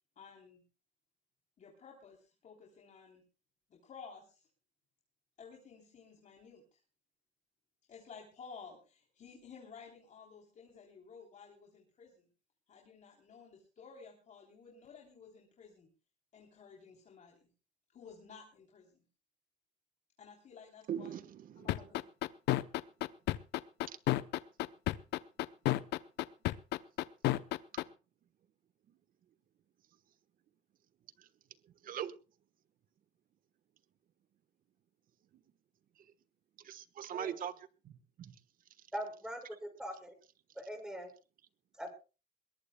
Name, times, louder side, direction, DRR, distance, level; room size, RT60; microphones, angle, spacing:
voice 1, 0.2-0.6 1.6-3.2 3.7-4.5 5.4-6.8 7.9-12.3 12.7-15.9 16.3-17.5 17.9-19.0 20.2-21.1 21.6-22.0, left 5 dB, 45° left, 0 dB, 3.5 m, -54 dB
voice 2, 20.9-21.7 23.9-24.0 31.2-31.3 31.8-32.1 36.0-36.1 36.6-37.9 38.2-38.4, right 9 dB, 55° right, 13 dB, 1.3 m, -41 dB
sound 1, 21.7-27.8, left 17 dB, 85° left, 0.7 m, -30 dB
voice 3, 38.9-39.4 39.8-40.1 40.5-41.1 41.8-41.9, equal, 5° right, 4 dB, 6.0 m, -41 dB
22.0 x 19.5 x 2.3 m, 0.33 s
cardioid pair, 110°, 17 cm